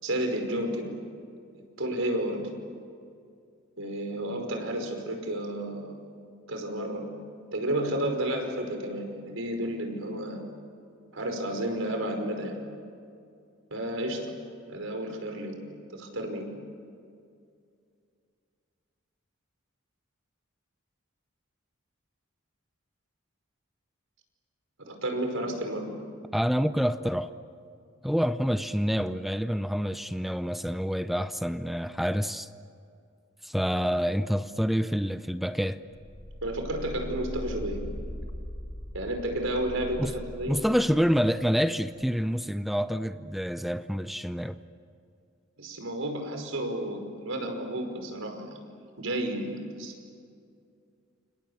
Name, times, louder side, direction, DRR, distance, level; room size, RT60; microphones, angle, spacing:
voice 1, 0.0-0.9 1.5-2.4 3.8-5.9 6.5-7.0 7.5-10.4 11.1-12.6 13.7-14.3 14.7-15.6 15.9-16.5 24.8-25.9 36.4-37.8 38.9-40.6 45.6-48.4 49.0-49.9, right 1 dB, 90° right, 5.2 m, -31 dB
voice 2, 26.3-27.3 28.0-32.5 33.4-35.8 40.0-40.1 40.5-44.6, equal, ahead, 0.6 m, -27 dB
sound 1, 35.9-41.5 42.0-42.1, equal, 30° left, 1.4 m, -40 dB
29.5 x 27.5 x 7.2 m
head